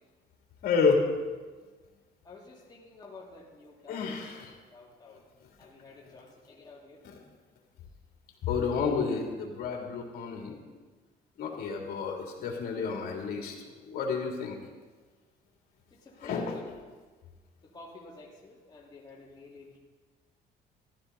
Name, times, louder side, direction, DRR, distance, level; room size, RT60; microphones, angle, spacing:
voice 1, 0.6-1.0 3.9-4.5 8.4-10.6 11.4-13.5 13.8-14.6 16.2-16.5, left 5 dB, 65° left, 0 dB, 3.2 m, -30 dB
voice 2, 2.2-5.2 5.6-7.0 15.9-16.7 17.6-19.8, left 3 dB, 25° left, -4 dB, 2.8 m, -50 dB
14.5 x 12.5 x 4.2 m, 1.4 s
cardioid pair, 110°, 17 cm